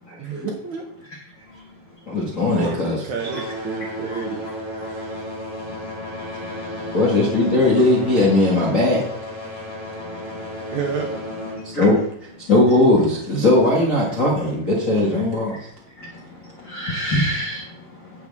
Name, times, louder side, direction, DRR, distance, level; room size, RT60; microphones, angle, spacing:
voice 1, 0.2-0.9 2.6-4.4 10.7-11.2, right 6 dB, 65° right, 2 dB, 2.0 m, -29 dB
sound 1, 1.3-2.7 3.0-13.3 14.1-14.2 14.9-15.0 15.6-15.7, left 1 dB, 20° right, 2.1 m, -34 dB
voice 2, 2.1-3.0 6.5-9.0 11.7-12.0 12.5-15.6, left 2 dB, 40° left, -4 dB, 1.1 m, -18 dB
voice 3, 16.0-17.7 18.0-18.1, equal, 70° left, -2 dB, 1.0 m, -27 dB
16.0 x 6.3 x 3.6 m, 0.69 s
omnidirectional pair, 4.5 m